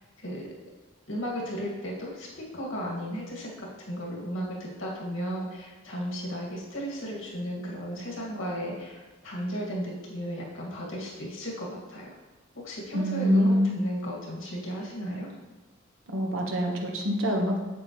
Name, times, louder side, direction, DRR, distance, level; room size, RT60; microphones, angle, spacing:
voice 1, 1.1-2.3 2.5-12.2 12.6-15.3, equal, 75° left, -3 dB, 2.1 m, -35 dB
voice 2, 12.9-13.8 16.1-17.6, equal, 80° right, 1 dB, 1.3 m, -25 dB
7.7 x 7.6 x 3.2 m, 1.2 s
head